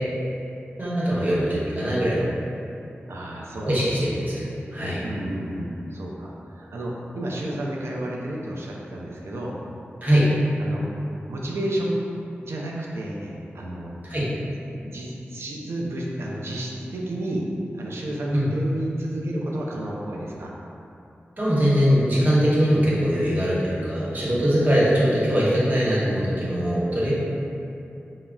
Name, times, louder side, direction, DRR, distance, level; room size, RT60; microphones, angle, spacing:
voice 1, 0.8-2.2 3.6-4.5 4.7-5.1 10.0-10.4 14.0-14.3 18.3-18.5 21.4-27.1, equal, 40° right, -8 dB, 0.9 m, -21 dB
voice 2, 3.1-3.7 4.0-4.1 5.0-9.6 10.6-10.9 11.3-12.0 12.4-13.9 14.4-14.5 14.8-17.5 17.7-20.5 24.2-24.4, right 1 dB, 80° right, -3 dB, 0.4 m, -31 dB
3.6 x 2.0 x 2.2 m, 2.7 s
cardioid pair, 45°, 4 cm